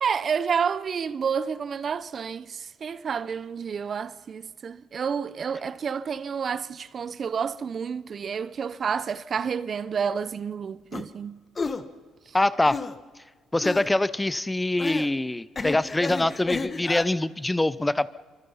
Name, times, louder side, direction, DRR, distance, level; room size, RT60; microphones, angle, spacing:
voice 1, 0.0-11.4, right 6 dB, 50° right, 0.7 m, -29 dB
sound 1, 10.9-11.0 11.5-11.8 12.7-13.0 13.6-13.9 14.8-15.1 15.5-17.0, left 4 dB, 35° left, 1.4 m, -31 dB
voice 2, 12.3-12.8 13.5-18.1, left 2 dB, 15° left, 0.8 m, -24 dB
25.0 x 24.5 x 5.6 m
supercardioid pair, 70°, 0 cm